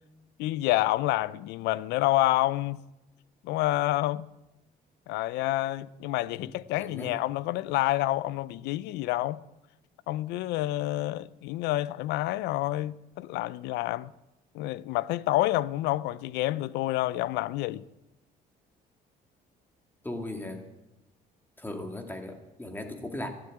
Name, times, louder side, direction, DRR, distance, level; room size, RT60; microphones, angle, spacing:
voice 1, 0.4-2.8 3.4-4.3 5.1-9.4 10.1-14.1 14.5-17.9, left 16 dB, 90° left, 0.5 m, -28 dB
voice 2, 6.8-7.2 20.0-20.6 21.6-23.3, left 1 dB, 10° left, 2.3 m, -37 dB
13.0 x 11.5 x 8.8 m
cardioid pair, 110°, 17 cm